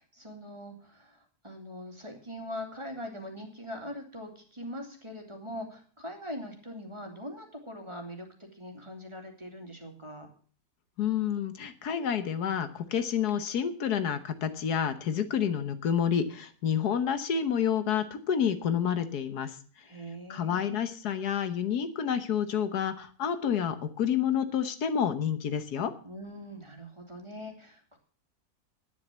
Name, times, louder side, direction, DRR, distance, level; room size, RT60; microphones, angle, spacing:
voice 1, 0.0-10.3 19.8-20.8 26.0-28.0, equal, 20° right, 2 dB, 2.6 m, -42 dB
voice 2, 11.0-19.6 20.3-25.9, left 8 dB, 80° left, 10 dB, 1.6 m, -29 dB
10.5 x 9.9 x 7.2 m, 0.43 s
omnidirectional pair, 1.7 m